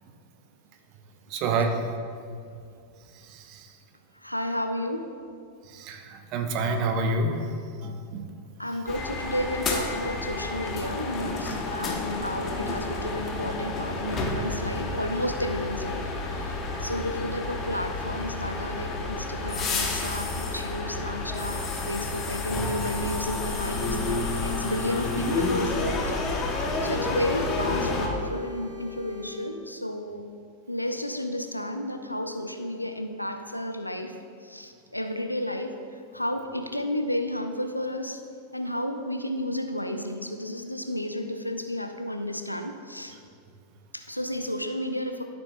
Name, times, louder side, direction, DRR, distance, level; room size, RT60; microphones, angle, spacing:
voice 1, 1.3-1.8 3.2-3.7 5.7-7.4 7.8-8.2, right 3 dB, 40° right, 5 dB, 0.9 m, -28 dB
voice 2, 4.1-5.1 8.6-16.5 16.8-26.1 26.8-30.3 30.7-34.2 34.4-35.8 36.1-38.2 38.5-43.2 43.9-45.2, left 1 dB, 85° left, 7 dB, 0.5 m, -32 dB
sound 1, 8.9-28.1, left 3 dB, 25° left, 1.2 m, -30 dB
sound 2, 23.8-29.5, left 8 dB, 65° right, 1.0 m, -43 dB
12.5 x 6.8 x 2.3 m, 2.3 s
figure-of-eight pair, 90°, 0 cm